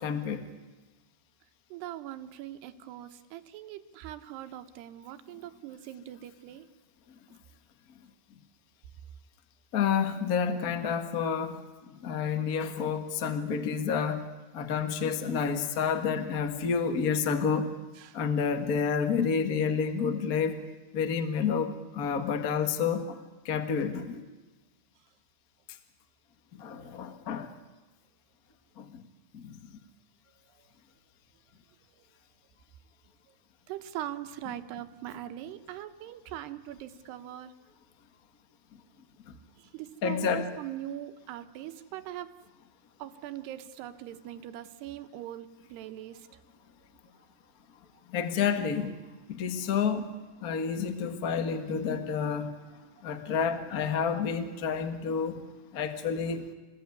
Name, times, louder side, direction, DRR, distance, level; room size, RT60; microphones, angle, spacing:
voice 1, 0.0-0.4 9.7-11.6 12.0-14.2 14.5-17.7 18.1-20.5 20.9-23.0 23.5-24.0 26.6-27.5 40.0-40.5 48.1-48.9 49.4-50.0 50.4-52.5 53.0-55.4 55.7-56.4, left 6 dB, 65° left, 8 dB, 0.9 m, -29 dB
voice 2, 1.7-6.7 18.0-18.2 26.7-26.8 33.7-37.5 39.6-42.3 43.0-46.4, right 12 dB, 85° right, 10 dB, 3.1 m, -41 dB
28.0 x 20.0 x 9.6 m, 1.2 s
omnidirectional pair, 4.7 m